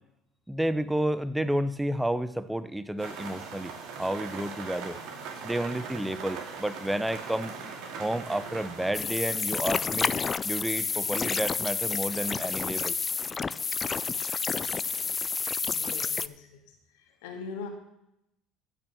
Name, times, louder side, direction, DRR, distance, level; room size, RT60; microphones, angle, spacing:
voice 1, 0.5-5.0 5.4-7.5 8.0-10.1 10.4-13.0, right 1 dB, 5° right, 14 dB, 0.8 m, -31 dB
sound 1, 3.0-8.9, right 5 dB, 70° right, 2.5 m, -40 dB
sound 2, 8.9-16.3, left 5 dB, 30° left, 0.4 m, -30 dB
voice 2, 15.6-16.6 17.0-17.7, left 5 dB, 85° left, 3 dB, 2.2 m, -41 dB
15.0 x 6.1 x 6.2 m, 0.83 s
supercardioid pair, 90°, 0 cm